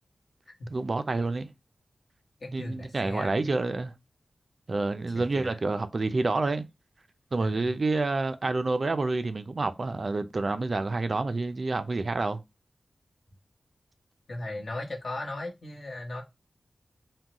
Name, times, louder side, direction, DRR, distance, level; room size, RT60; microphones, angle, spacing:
voice 1, 0.7-1.5 2.5-3.9 4.7-6.6 7.3-12.4, right 3 dB, 45° right, 0.3 m, -28 dB
voice 2, 2.4-3.4 5.1-5.6 7.4-7.7 14.3-16.2, left 2 dB, 60° left, 1.1 m, -37 dB
3.7 x 2.1 x 2.8 m
wide cardioid pair, 110°, 0 cm